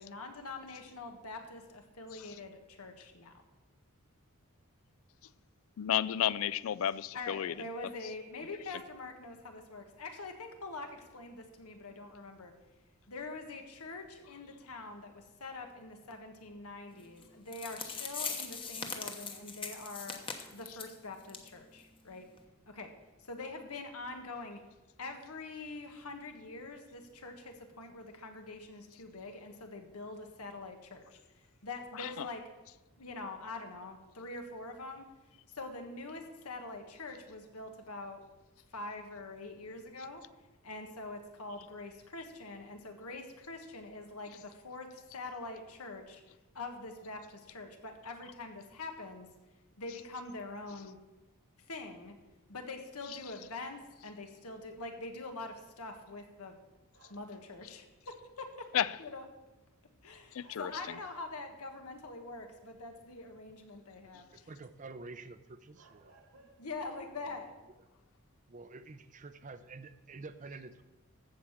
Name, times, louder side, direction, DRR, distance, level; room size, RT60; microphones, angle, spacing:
voice 1, 0.0-3.4 7.1-12.5 13.1-20.2 20.5-22.3 22.7-22.9 23.2-24.6 25.0-31.2 31.6-32.4 33.0-35.1 35.5-38.2 38.7-40.2 40.6-46.2 46.5-49.3 49.8-51.0 51.7-52.1 52.5-56.6 57.1-58.7 59.0-59.3 60.0-64.5 66.6-67.5, left 3 dB, 90° left, 1.5 m, -44 dB
voice 2, 5.8-7.5 32.0-32.3 58.7-59.0 60.3-60.7, left 10 dB, 65° left, 0.4 m, -32 dB
Crusing Tin Foil, 17.2-17.3 17.5-20.9 21.3-21.5 21.8-21.9 22.4-22.5, left 5 dB, 25° left, 1.0 m, -40 dB
sound 1, 56.9-57.5 59.2-59.3 60.4-61.3 61.9-62.5 65.1-65.2 65.7-66.8 67.1-67.4, right 3 dB, 90° right, 2.0 m, -61 dB
voice 3, 64.3-66.2 68.5-70.8, right 3 dB, 35° right, 0.6 m, -48 dB
14.5 x 5.0 x 7.3 m
head